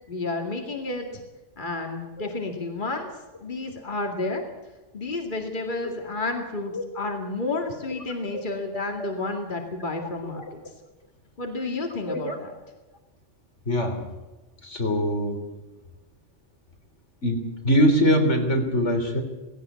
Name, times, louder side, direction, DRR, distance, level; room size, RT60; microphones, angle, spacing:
voice 1, 0.1-1.2 1.6-3.1 3.4-4.4 4.9-10.4 11.4-12.5, left 2 dB, 40° left, 2 dB, 2.4 m, -31 dB
voice 2, 13.7-14.0 14.6-15.4 17.2-19.2, equal, 75° left, 4 dB, 3.8 m, -23 dB
18.5 x 17.0 x 8.4 m, 1.1 s
omnidirectional pair, 1.2 m